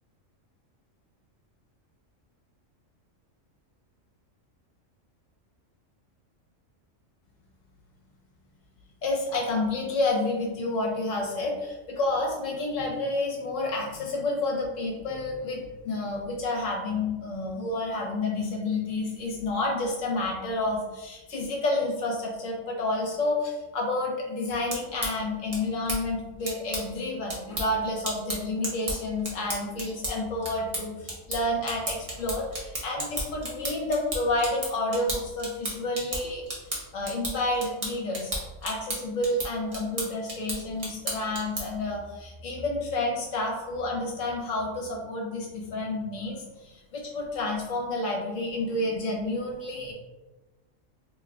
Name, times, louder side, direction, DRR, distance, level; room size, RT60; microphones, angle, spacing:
voice 1, 9.0-36.4 36.9-38.3 38.6-49.9, left 2 dB, 75° left, -1 dB, 1.1 m, -30 dB
sound 1, 24.5-41.9, right 1 dB, 35° right, 0.7 m, -35 dB
2.9 x 2.3 x 3.5 m, 1.1 s
omnidirectional pair, 1.3 m